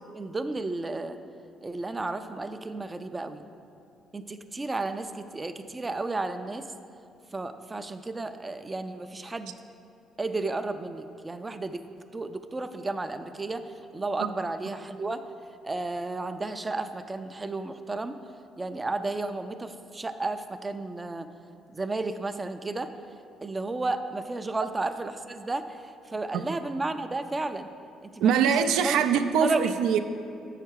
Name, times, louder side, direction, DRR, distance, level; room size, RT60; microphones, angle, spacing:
voice 1, 0.1-1.2 1.6-3.4 4.1-6.7 7.3-9.5 10.2-11.8 12.1-15.2 15.6-18.2 18.6-21.3 21.7-22.9 23.4-27.7 28.0-28.3 28.8-29.0 29.4-29.7, right 2 dB, 20° right, 9 dB, 0.3 m, -33 dB
voice 2, 28.2-30.0, right 7 dB, 90° right, 9 dB, 0.4 m, -23 dB
7.8 x 5.7 x 4.6 m, 2.6 s
cardioid pair, 125°, 0 cm